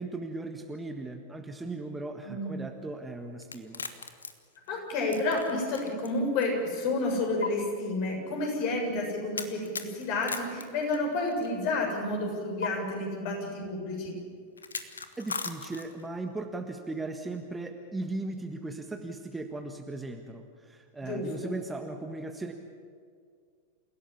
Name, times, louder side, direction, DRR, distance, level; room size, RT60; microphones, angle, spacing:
voice 1, 0.0-3.8 15.2-22.5, right 2 dB, 10° right, 5 dB, 1.6 m, -37 dB
voice 2, 2.2-2.6 4.7-14.1 21.0-21.5, left 2 dB, 45° left, 1 dB, 7.5 m, -30 dB
sound 1, 3.4-6.1 6.4-6.5 7.4-7.5 9.4-11.5 12.6-12.7 14.6-16.1, left 4 dB, 75° left, 1.5 m, -37 dB
29.0 x 16.5 x 8.5 m, 2.1 s
figure-of-eight pair, 90°, 0 cm